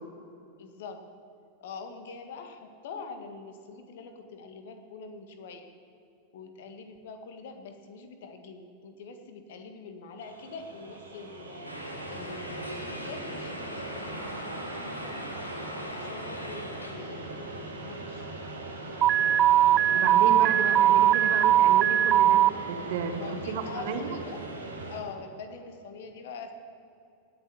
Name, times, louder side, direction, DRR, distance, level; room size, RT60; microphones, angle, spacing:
voice 1, 0.6-1.0 1.6-5.7 6.3-14.6 15.0-15.3 15.9-18.3 23.2-24.4 24.9-26.5, left 4 dB, 55° left, 6 dB, 1.8 m, -44 dB
sound 1, 10.2-25.0, right 2 dB, 75° right, 2.8 m, -40 dB
sound 2, 11.6-16.9, left 1 dB, 85° left, 1.8 m, -41 dB
Alarm, 19.0-22.5, right 11 dB, 30° right, 0.4 m, -20 dB
voice 2, 19.8-24.2, right 6 dB, 55° right, 8 dB, 1.4 m, -33 dB
17.5 x 7.3 x 8.6 m, 2.5 s
figure-of-eight pair, 90°, 0 cm